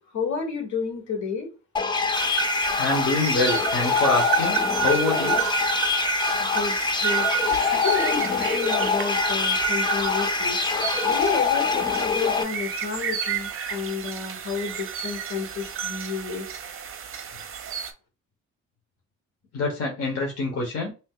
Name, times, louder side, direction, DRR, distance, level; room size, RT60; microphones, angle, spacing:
voice 1, 0.0-1.5 6.4-7.3 7.7-10.6 11.0-16.4, left 5 dB, 70° left, 3 dB, 1.4 m, -31 dB
sound 1, 1.8-12.4, left 5 dB, 15° left, 0.3 m, -24 dB
sound 2, 2.1-17.9, right 9 dB, 45° right, 0.6 m, -30 dB
voice 2, 2.8-5.4 19.5-20.9, left 3 dB, 50° left, -1 dB, 1.0 m, -25 dB
2.8 x 2.1 x 3.6 m, 0.31 s
cardioid pair, 90°, 30 cm